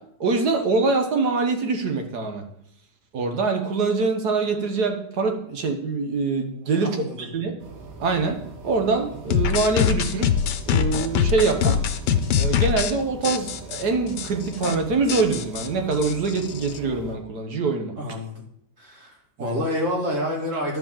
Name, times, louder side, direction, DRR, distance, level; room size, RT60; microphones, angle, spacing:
voice 1, 0.2-2.5 3.1-7.6 8.0-8.4 8.6-10.3 10.7-11.8 12.4-17.9 19.4-19.6, right 4 dB, 65° right, 4 dB, 1.9 m, -24 dB
voice 2, 6.8-7.3 18.0-18.4 18.8-20.8, equal, 45° right, -1 dB, 2.6 m, -28 dB
sound 1, 7.6-17.2, right 3 dB, 80° right, 2.0 m, -41 dB
sound 2, 9.3-12.9 13.2-13.8 14.2-14.3 14.5-14.8 15.1-16.8, left 8 dB, 80° left, 1.4 m, -23 dB
11.0 x 5.0 x 7.4 m, 0.72 s
omnidirectional pair, 1.9 m